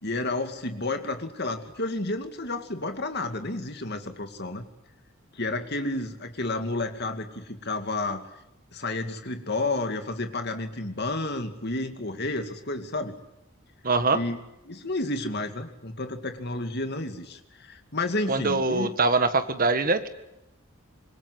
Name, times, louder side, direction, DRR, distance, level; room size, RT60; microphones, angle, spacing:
voice 1, 0.0-4.7 5.3-8.2 8.7-13.1 14.1-14.4 14.7-18.9, left 2 dB, 50° left, 6 dB, 2.5 m, -31 dB
voice 2, 13.8-14.2 18.3-20.1, right 3 dB, 40° right, 9 dB, 1.7 m, -23 dB
26.0 x 22.0 x 9.8 m, 0.89 s
head